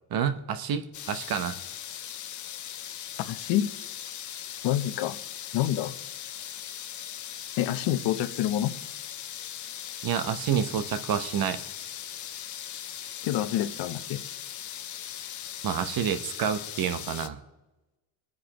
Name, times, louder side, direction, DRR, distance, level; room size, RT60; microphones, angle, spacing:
voice 1, 0.1-1.6 10.0-11.6 15.6-17.4, right 8 dB, 50° right, 10 dB, 1.0 m, -28 dB
sound 1, 0.9-17.3, left 10 dB, 40° left, 0.8 m, -39 dB
voice 2, 3.2-3.7 4.6-5.2 5.5-6.0 7.6-8.7 13.2-14.2, left 12 dB, 65° left, 12 dB, 0.9 m, -27 dB
24.0 x 9.4 x 3.0 m, 1.1 s
cardioid pair, 110°, 46 cm